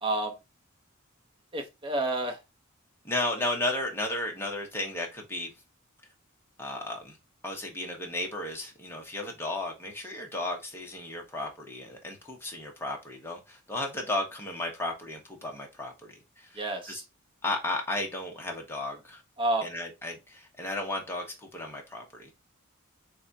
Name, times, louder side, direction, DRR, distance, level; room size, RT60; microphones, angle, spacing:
voice 1, 0.0-0.4 1.5-2.4 16.5-17.0 19.4-19.7, right 2 dB, 25° right, 1.0 m, -29 dB
voice 2, 3.0-5.5 6.6-7.2 7.4-16.6 16.9-17.0 17.4-19.2 19.6-22.3, left 2 dB, 10° left, 1.2 m, -34 dB
3.5 x 3.1 x 4.0 m
head